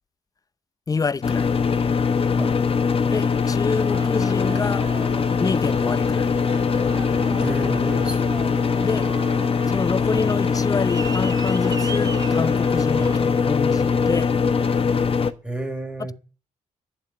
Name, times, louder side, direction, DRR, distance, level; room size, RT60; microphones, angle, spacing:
voice 1, 0.9-1.5 3.1-4.9 5.4-6.3 8.8-9.1 9.7-14.3, left 4 dB, 25° left, 0.6 m, -27 dB
sound 1, 1.2-15.3, left 5 dB, 45° left, 1.2 m, -21 dB
Aircraft, 3.8-13.2, right 4 dB, 30° right, 0.9 m, -37 dB
voice 2, 7.4-8.4 10.1-10.2 13.0-13.1 15.4-16.1, right 1 dB, 5° right, 4.1 m, -31 dB
11.5 x 7.1 x 9.2 m
cardioid pair, 75°, 14 cm